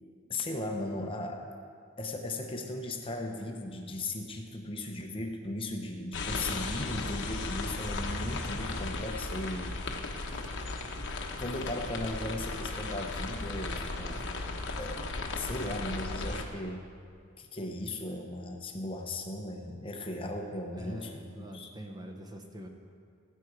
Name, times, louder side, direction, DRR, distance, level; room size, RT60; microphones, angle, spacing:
voice 1, 0.3-1.5 2.0-9.8 10.8-10.9 11.4-14.3 14.8-15.0 15.4-16.9 17.4-21.7, left 1 dB, 25° left, 3 dB, 0.7 m, -37 dB
sound 1, 6.1-16.4, left 3 dB, 55° left, 1.1 m, -36 dB
voice 2, 20.8-22.7, right 1 dB, 20° right, 3 dB, 0.9 m, -45 dB
18.0 x 8.4 x 4.6 m, 2.3 s
head